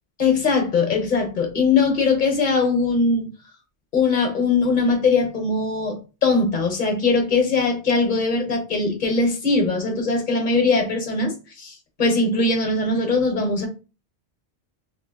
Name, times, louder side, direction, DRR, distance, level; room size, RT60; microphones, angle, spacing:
voice 1, 0.2-3.3 3.9-13.7, left 4 dB, 45° left, 1.0 m, -21 dB
3.1 x 2.7 x 2.7 m
omnidirectional pair, 1.1 m